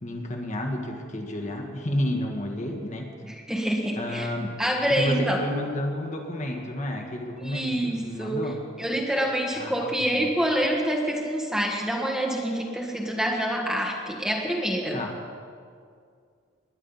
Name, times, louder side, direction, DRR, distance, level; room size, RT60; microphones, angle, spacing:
voice 1, 0.0-3.1 3.9-8.6 9.5-10.3 14.9-15.2, left 1 dB, 40° left, 2 dB, 1.7 m, -31 dB
voice 2, 3.2-4.3 4.6-5.4 7.4-8.4 8.8-15.0, right 1 dB, 5° right, 0 dB, 1.3 m, -26 dB
21.0 x 9.8 x 5.6 m, 2.2 s
head